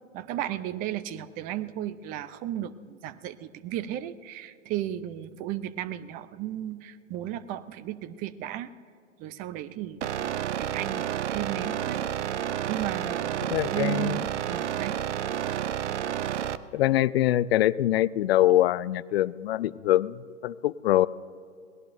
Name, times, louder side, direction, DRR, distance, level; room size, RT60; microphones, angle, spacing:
voice 1, 0.1-8.7 9.2-12.4 12.7-15.0, right 12 dB, 20° right, 15 dB, 0.5 m, -35 dB
sound 1, 10.0-16.6, right 10 dB, 65° right, 0.7 m, -30 dB
voice 2, 13.4-14.2 16.7-21.1, left 14 dB, 55° left, 18 dB, 0.5 m, -24 dB
28.5 x 19.0 x 2.6 m, 2.3 s
figure-of-eight pair, 110°, 38 cm